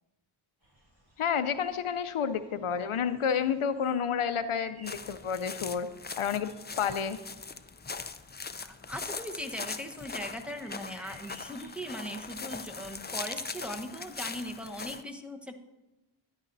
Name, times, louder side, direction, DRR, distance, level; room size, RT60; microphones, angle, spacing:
sound 1, 0.6-11.7, right 1 dB, 65° right, 3.9 m, -58 dB
voice 1, 1.2-5.9 6.2-6.5 6.8-7.2, left 7 dB, 80° left, 11 dB, 0.6 m, -30 dB
sound 2, 4.8-15.0, left 4 dB, 20° left, 0.4 m, -41 dB
voice 2, 8.6-15.6, equal, ahead, 4 dB, 1.0 m, -39 dB
14.0 x 9.8 x 2.6 m, 1.1 s
wide cardioid pair, 40°, 50 cm